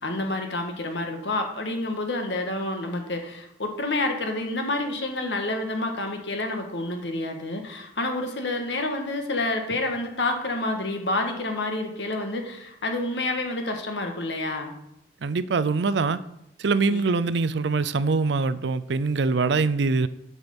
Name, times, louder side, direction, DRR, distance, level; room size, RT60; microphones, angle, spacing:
voice 1, 0.0-14.7 16.9-17.0, left 2 dB, 70° left, 4 dB, 1.7 m, -28 dB
voice 2, 15.2-16.2 16.6-20.1, right 4 dB, 70° right, 15 dB, 0.5 m, -23 dB
8.3 x 6.0 x 7.1 m, 0.82 s
head